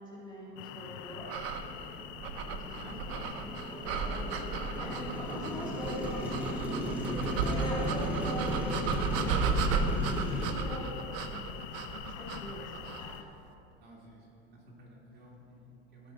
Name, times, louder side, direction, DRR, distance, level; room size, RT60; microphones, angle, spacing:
voice 1, 0.0-1.3 2.4-6.4 7.0-9.6 10.1-13.2, left 1 dB, 15° left, -5 dB, 2.1 m, -42 dB
sound 1, 0.6-13.2, left 11 dB, 65° left, 0.6 m, -45 dB
Motorcycle, 1.2-10.5, equal, 5° right, 1.1 m, -36 dB
sound 2, 1.2-13.1, right 5 dB, 55° right, 0.8 m, -35 dB
voice 2, 2.6-3.3 6.7-7.2 13.8-16.1, equal, 35° right, -3 dB, 2.3 m, -51 dB
15.5 x 5.4 x 4.1 m, 2.7 s
supercardioid pair, 125°, 30 cm